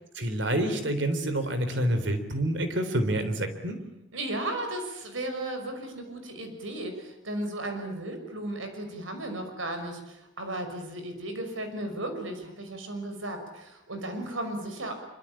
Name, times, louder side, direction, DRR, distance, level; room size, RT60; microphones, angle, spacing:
voice 1, 0.2-3.8, right 1 dB, 65° right, 9 dB, 3.7 m, -27 dB
voice 2, 4.1-14.9, right 1 dB, 80° right, 6 dB, 5.9 m, -35 dB
25.5 x 24.5 x 8.8 m, 0.90 s
head